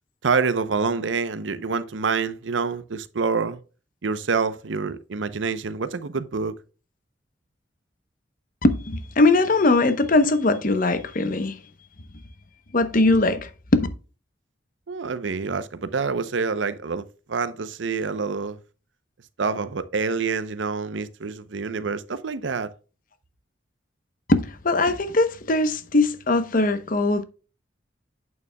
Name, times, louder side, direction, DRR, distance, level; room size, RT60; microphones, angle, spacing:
voice 1, 0.2-3.6 4.0-6.6 14.9-18.6 19.4-22.7, right 5 dB, 90° right, 0.7 m, -27 dB
voice 2, 8.6-11.5 12.7-13.9 24.3-27.2, left 2 dB, 50° left, 0.9 m, -20 dB
8.7 x 6.8 x 2.2 m
head